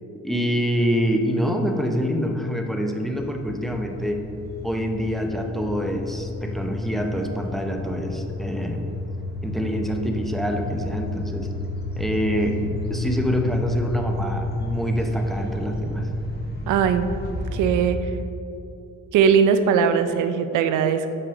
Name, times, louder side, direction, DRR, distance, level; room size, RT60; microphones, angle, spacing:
voice 1, 0.2-4.2 4.6-8.9 9.4-11.5 12.0-16.1, equal, ahead, 3 dB, 0.6 m, -26 dB
sound 1, 3.2-17.8, left 2 dB, 35° left, 1.4 m, -31 dB
voice 2, 16.7-17.1 17.5-18.0 19.1-21.1, right 7 dB, 85° right, 10 dB, 0.5 m, -20 dB
5.6 x 5.4 x 5.3 m, 2.8 s
cardioid pair, 90°, 30 cm